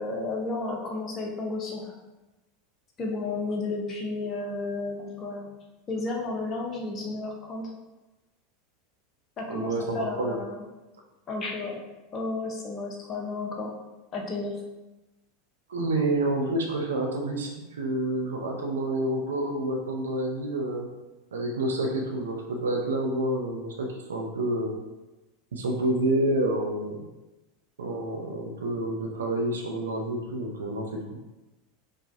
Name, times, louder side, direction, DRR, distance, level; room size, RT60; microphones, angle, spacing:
voice 1, 0.0-1.9 3.0-5.5 5.9-7.7 9.4-10.6 11.3-11.8 12.1-13.7 14.1-14.5, left 3 dB, 30° left, 0 dB, 0.8 m, -32 dB
voice 2, 9.5-10.4 15.7-20.9 21.3-24.8 25.5-27.1 27.8-31.2, right 1 dB, 75° right, 2 dB, 0.6 m, -28 dB
4.8 x 2.2 x 2.7 m, 1.1 s
figure-of-eight pair, 85°, 0 cm